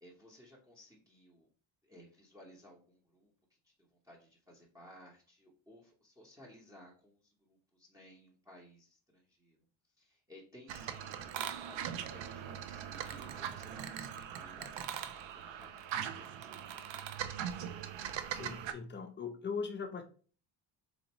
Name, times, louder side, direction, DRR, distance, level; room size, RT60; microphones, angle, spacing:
voice 1, 0.0-1.5 1.8-3.3 3.6-9.6 10.0-16.8, equal, 10° right, -5 dB, 0.8 m, -58 dB
sound 1, 10.7-18.7, right 9 dB, 70° right, 0.6 m, -41 dB
voice 2, 18.3-20.0, left 5 dB, 25° left, 6 dB, 0.4 m, -40 dB
4.2 x 2.5 x 2.9 m, 0.41 s
cardioid pair, 125°, 47 cm